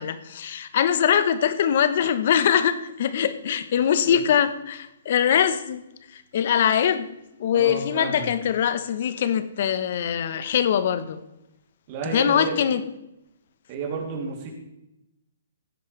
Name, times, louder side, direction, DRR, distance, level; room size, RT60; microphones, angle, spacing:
voice 1, 0.0-5.8 6.1-7.1 7.4-11.2 12.1-12.8, left 9 dB, 55° left, 12 dB, 1.0 m, -22 dB
voice 2, 7.5-8.3 11.9-12.6 13.7-14.5, right 4 dB, 40° right, 0 dB, 2.9 m, -31 dB
15.5 x 10.0 x 3.3 m, 0.90 s
hypercardioid pair, 135°, 0 cm